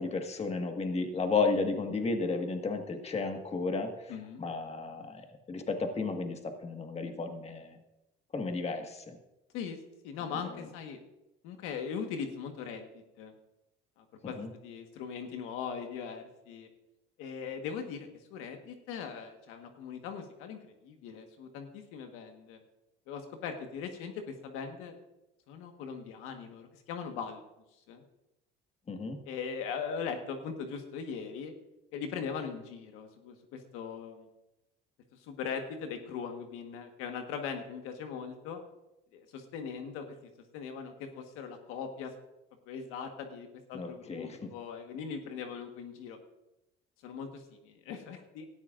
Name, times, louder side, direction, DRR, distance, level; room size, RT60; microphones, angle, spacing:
voice 1, 0.0-4.1 4.4-7.8 8.3-9.2 10.4-10.7 14.2-14.5 28.9-29.2 43.7-44.5, left 4 dB, 30° left, 4 dB, 1.8 m, -33 dB
voice 2, 4.1-4.4 9.5-9.8 10.0-11.0 11.4-12.9 13.2-13.3 14.0-16.7 17.2-20.6 20.8-22.6 23.1-25.0 25.5-27.4 27.9-28.0 29.3-31.5 31.9-34.3 35.2-38.6 39.1-40.0 40.5-42.1 42.6-46.2 47.0-48.5, left 6 dB, 90° left, 5 dB, 1.5 m, -40 dB
17.5 x 13.5 x 2.6 m, 0.94 s
cardioid pair, 110°, 21 cm